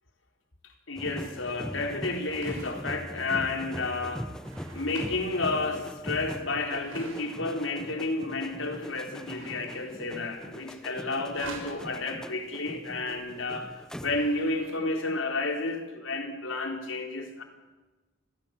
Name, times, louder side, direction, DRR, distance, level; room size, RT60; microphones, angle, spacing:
voice 1, 0.9-4.3 4.7-17.4, left 2 dB, 75° left, 4.0 m, -31 dB
sound 1, 1.0-14.5 14.8-15.1, equal, 5° left, 0.9 m, -41 dB
sound 2, 1.6-14.8, right 3 dB, 85° right, 6.1 m, -50 dB
28.5 x 23.0 x 7.2 m
head